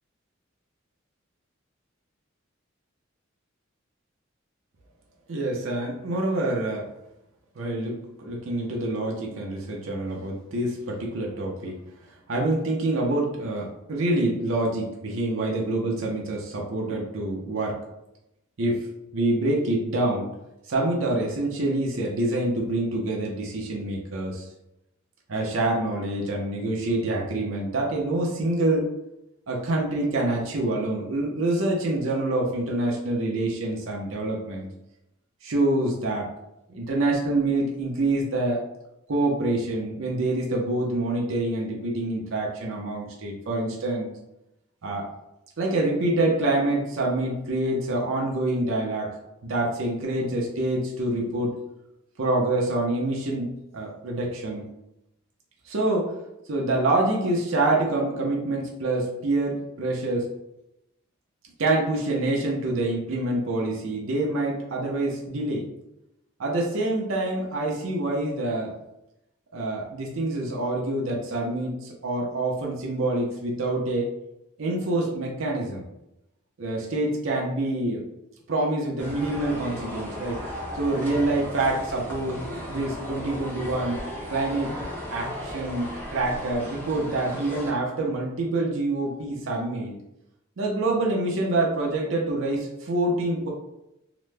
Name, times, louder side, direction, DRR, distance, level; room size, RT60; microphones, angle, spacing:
voice 1, 5.3-6.9 7.6-11.8 12.3-17.8 18.6-18.9 19.1-20.3 20.7-24.4 25.3-28.9 29.5-34.7 35.4-36.3 36.7-38.6 39.1-44.1 44.8-45.1 45.6-51.6 52.2-54.6 55.7-56.1 56.5-60.3 61.6-65.7 66.4-68.8 69.5-74.1 74.6-75.8 76.6-78.1 78.5-80.4 80.7-84.0 84.3-84.7 85.1-89.9 90.6-93.5, right 2 dB, 80° right, -2 dB, 0.6 m, -26 dB
sound 1, 79.0-87.7, equal, 10° left, 0.8 m, -36 dB
2.9 x 2.1 x 3.3 m, 0.87 s
head